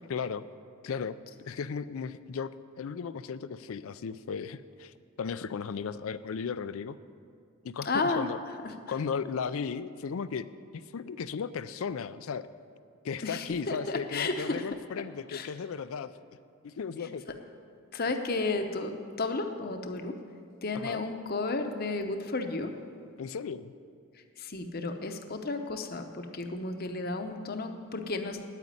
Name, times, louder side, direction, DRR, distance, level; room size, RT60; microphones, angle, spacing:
voice 1, 0.0-0.4 0.8-1.2 1.4-2.5 2.8-7.0 7.6-8.4 8.9-10.5 10.7-12.5 13.0-16.1 16.6-17.2 20.7-21.0 23.2-23.7, left 6 dB, 70° left, 14 dB, 0.4 m, -35 dB
voice 2, 7.9-8.3 13.2-14.6 15.3-15.5 17.9-18.9 19.2-20.1 20.6-22.7 24.4-28.4, left 3 dB, 45° left, 6 dB, 0.8 m, -32 dB
9.2 x 8.7 x 9.6 m, 2.4 s
head